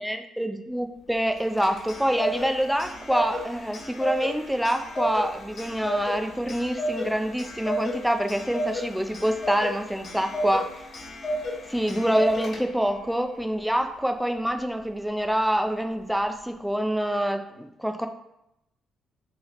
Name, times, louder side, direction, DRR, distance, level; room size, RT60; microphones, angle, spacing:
voice 1, 0.0-10.7 11.7-18.1, equal, ahead, 6 dB, 0.3 m, -26 dB
Clock, 1.3-12.9, equal, 50° left, 1.2 m, -33 dB
2.9 x 2.8 x 4.0 m, 0.85 s
cardioid pair, 90°, 0 cm